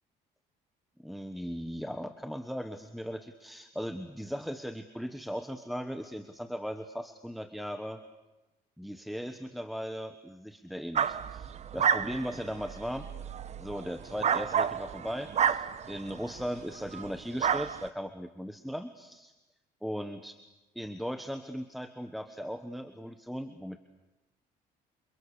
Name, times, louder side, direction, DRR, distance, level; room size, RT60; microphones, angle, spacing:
voice 1, 1.0-8.0 8.8-13.1 13.6-19.3 19.8-20.4 20.7-23.8, equal, ahead, 8 dB, 1.3 m, -38 dB
sound 1, 11.0-16.5 16.9-17.1 17.4-17.9, right 8 dB, 40° right, 1.0 m, -30 dB
29.0 x 27.5 x 6.9 m, 1.1 s
cardioid pair, 110°, 17 cm